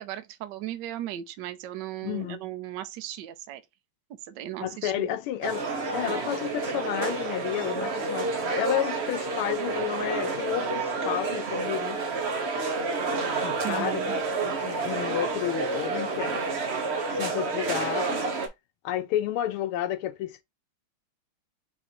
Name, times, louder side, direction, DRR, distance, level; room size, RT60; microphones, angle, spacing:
voice 1, 0.0-3.6 4.2-5.2 13.6-14.2, right 13 dB, 70° right, 1.1 m, -36 dB
voice 2, 2.0-2.4 4.6-5.6 5.9-12.1 13.4-16.4 17.1-18.3 18.8-20.4, left 12 dB, 90° left, 1.5 m, -31 dB
sound 1, 5.4-18.5, right 3 dB, 55° right, 0.7 m, -29 dB
4.7 x 2.5 x 4.2 m
omnidirectional pair, 2.4 m